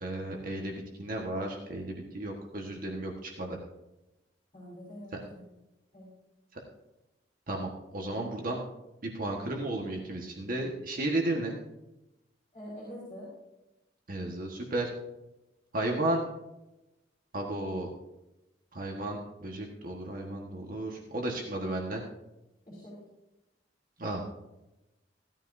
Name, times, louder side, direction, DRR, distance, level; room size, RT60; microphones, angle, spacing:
voice 1, 0.0-3.6 7.5-8.6 9.0-11.6 14.1-14.9 15.7-16.2 17.3-17.9 18.7-22.0 24.0-24.3, right 1 dB, 50° right, 0 dB, 1.5 m, -33 dB
voice 2, 4.5-5.4 5.9-6.1 8.3-8.4 12.5-13.3 22.7-22.9, equal, 35° left, -7 dB, 5.4 m, -45 dB
16.5 x 13.0 x 2.7 m, 0.97 s
head